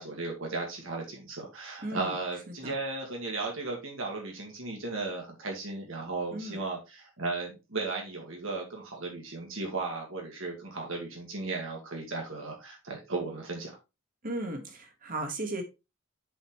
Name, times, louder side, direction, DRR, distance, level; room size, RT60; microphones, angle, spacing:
voice 1, 0.0-13.8, right 3 dB, 70° right, 0 dB, 2.2 m, -35 dB
voice 2, 1.8-2.1 2.5-2.7 6.3-6.6 14.2-15.6, right 2 dB, 45° right, 4 dB, 1.9 m, -36 dB
7.8 x 5.7 x 3.3 m, 0.26 s
head